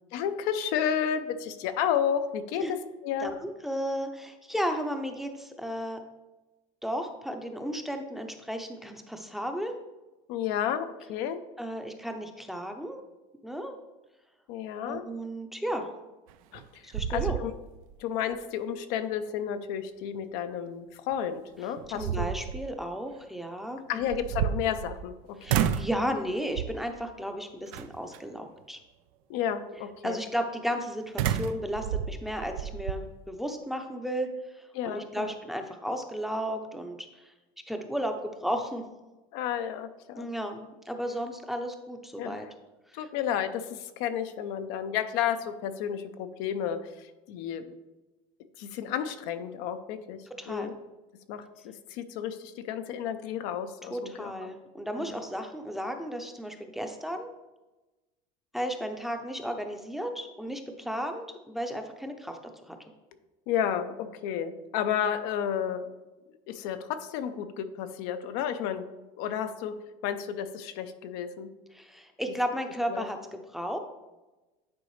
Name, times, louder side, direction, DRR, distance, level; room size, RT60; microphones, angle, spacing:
voice 1, 0.1-2.8 3.0-3.3 10.3-11.4 14.5-15.0 16.5-17.5 18.0-22.3 23.9-25.6 29.3-30.2 34.7-35.3 39.3-40.3 42.2-42.4 42.9-47.6 48.6-50.7 51.3-54.5 54.9-55.1 63.5-65.9 66.5-68.8 69.2-69.8 70.0-71.5 72.9-73.1, left 9 dB, 70° left, 9 dB, 0.6 m, -32 dB
voice 2, 3.2-6.0 6.8-9.7 11.6-13.0 13.4-13.8 14.8-15.9 16.8-17.4 21.9-24.1 25.4-28.8 30.0-34.3 34.6-37.3 37.7-38.8 40.2-42.5 43.0-43.1 50.4-50.7 53.9-57.3 58.5-62.4 62.7-62.8 71.7-73.8, equal, ahead, 5 dB, 0.6 m, -34 dB
sound 1, 16.3-16.6 16.9-17.9 18.3-18.4 21.1-21.2 21.8-22.7 24.0-25.1 25.5-26.0 26.5-26.9 27.7-28.2 31.2-33.0, right 9 dB, 80° right, 0.4 m, -30 dB
9.4 x 3.9 x 3.2 m, 1.1 s
supercardioid pair, 115°, 17 cm